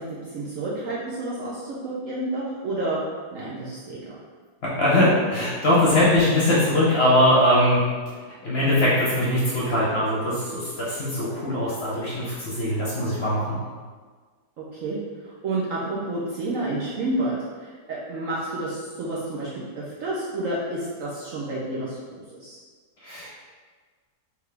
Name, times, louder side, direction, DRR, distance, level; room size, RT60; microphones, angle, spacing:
voice 1, 0.0-3.0 3.3-4.2 14.6-15.0 15.2-22.6, right 2 dB, 65° right, -6 dB, 0.9 m, -30 dB
voice 2, 4.8-7.8 8.4-13.6 23.0-23.3, left 1 dB, 45° left, -8 dB, 1.0 m, -21 dB
3.6 x 3.4 x 3.3 m, 1.5 s
omnidirectional pair, 1.9 m